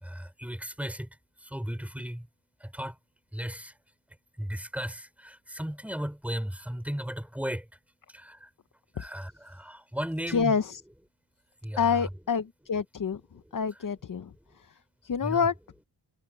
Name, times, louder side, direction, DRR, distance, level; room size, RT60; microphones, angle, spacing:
voice 1, 0.0-1.1 1.4-2.3 2.6-3.0 3.3-3.7 4.4-7.7 8.1-8.5 9.0-10.6 11.6-12.1 15.2-15.5, equal, 5° right, 5.2 m, -35 dB
voice 2, 10.3-10.8 11.8-13.2 13.5-14.3 15.0-15.5, left 6 dB, 45° left, 0.8 m, -27 dB
wide cardioid pair, 175°, 46 cm